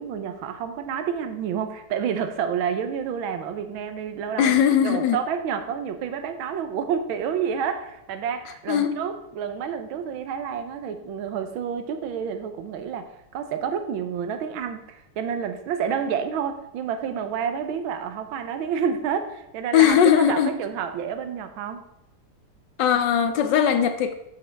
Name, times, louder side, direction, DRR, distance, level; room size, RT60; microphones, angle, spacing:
voice 1, 0.0-4.5 4.8-20.0 20.3-21.8, right 7 dB, 85° right, 8 dB, 1.5 m, -29 dB
voice 2, 4.4-5.2 8.7-9.0 19.7-20.6 22.8-24.1, left 9 dB, 70° left, 8 dB, 1.1 m, -19 dB
7.9 x 6.8 x 3.4 m, 0.85 s
omnidirectional pair, 2.2 m